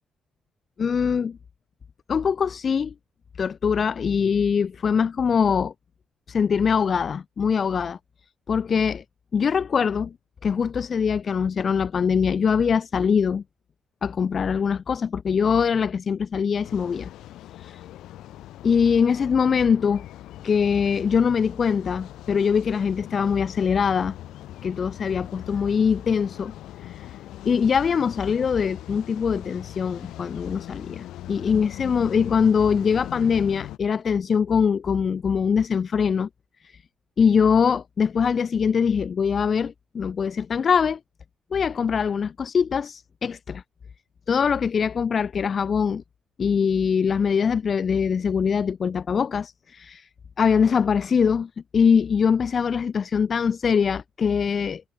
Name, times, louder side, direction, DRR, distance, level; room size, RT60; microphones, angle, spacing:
voice 1, 0.8-1.4 2.1-2.9 3.4-5.7 6.3-8.0 8.5-9.0 9.3-10.1 10.4-13.4 14.0-17.1 17.5-17.8 18.6-20.0 20.4-24.2 24.6-26.5 26.8-27.1 27.4-36.3 36.6-36.8 37.2-41.0 41.5-43.6 44.3-46.0 46.4-50.1 50.4-54.8, left 6 dB, 45° left, 1.2 m, -23 dB
sound 1, 16.6-33.8, left 14 dB, 85° left, 2.0 m, -40 dB
cardioid pair, 90°, 0 cm